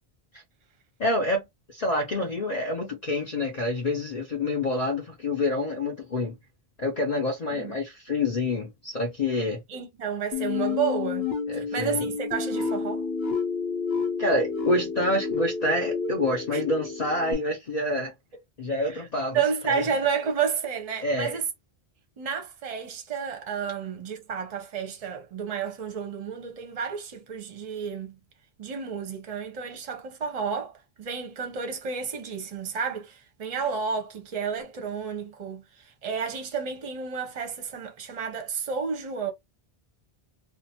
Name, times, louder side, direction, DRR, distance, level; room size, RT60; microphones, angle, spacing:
voice 1, 1.0-1.5 1.7-6.4 6.8-9.6 11.5-12.1 14.2-18.1 18.6-19.8 21.0-21.4, left 1 dB, 45° left, 0.7 m, -27 dB
voice 2, 9.7-11.3 11.6-13.1 16.5-16.6 18.9-19.0 19.3-21.4 22.2-28.2 28.6-39.3, right 6 dB, 40° right, 0.7 m, -31 dB
sound 1, 10.3-17.3, left 5 dB, 75° left, 1.0 m, -30 dB
2.5 x 2.2 x 2.7 m
omnidirectional pair, 1.1 m